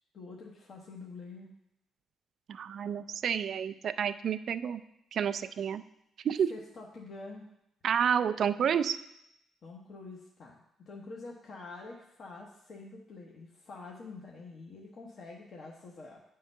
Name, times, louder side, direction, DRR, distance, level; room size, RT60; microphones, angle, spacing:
voice 1, 0.1-1.5 6.5-7.5 9.6-16.2, left 3 dB, 55° left, -1 dB, 0.9 m, -46 dB
voice 2, 2.5-4.8 5.1-5.8 6.2-6.5 7.8-9.0, right 8 dB, 60° right, 12 dB, 0.3 m, -30 dB
8.8 x 3.8 x 5.3 m, 0.81 s
cardioid pair, 90°, 0 cm